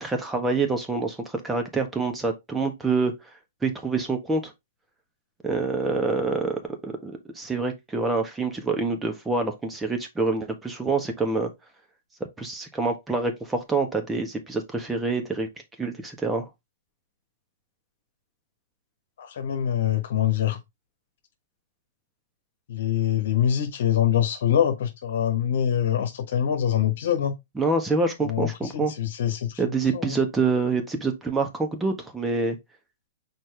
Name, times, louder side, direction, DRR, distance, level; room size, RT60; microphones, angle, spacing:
voice 1, 0.0-3.1 3.6-4.5 5.4-11.5 12.4-15.5 15.8-16.4 27.6-28.9 29.6-32.6, right 3 dB, 10° right, 1.6 m, -26 dB
voice 2, 19.2-20.6 22.7-27.3 28.2-29.6 29.9-30.2, left 10 dB, 65° left, 1.4 m, -24 dB
6.1 x 4.3 x 3.5 m
hypercardioid pair, 120°, 0 cm